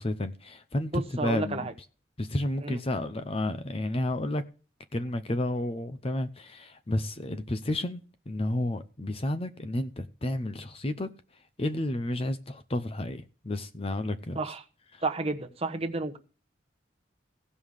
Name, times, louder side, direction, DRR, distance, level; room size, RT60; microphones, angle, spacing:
voice 1, 0.0-1.7 2.2-4.4 4.9-11.1 11.6-14.4 14.9-15.0, left 1 dB, 30° left, 0.7 m, -31 dB
voice 2, 0.9-1.7 2.6-2.8 14.3-14.6 15.0-16.2, right 3 dB, 30° right, 1.1 m, -31 dB
16.5 x 5.5 x 6.5 m
head